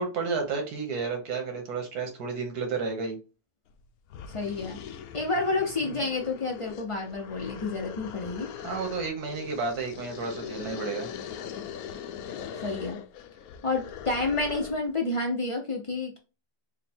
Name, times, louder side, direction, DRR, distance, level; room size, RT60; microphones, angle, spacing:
voice 1, 0.0-3.2 8.6-11.1, right 4 dB, 85° right, 4 dB, 1.6 m, -31 dB
sound 1, 3.7-3.8 4.1-14.9, left 8 dB, 75° left, 1.0 m, -41 dB
voice 2, 4.3-4.8 5.1-8.5 12.5-13.0 13.6-16.2, left 3 dB, 60° left, 0 dB, 0.3 m, -29 dB
3.8 x 2.1 x 4.2 m, 0.32 s
omnidirectional pair, 1.6 m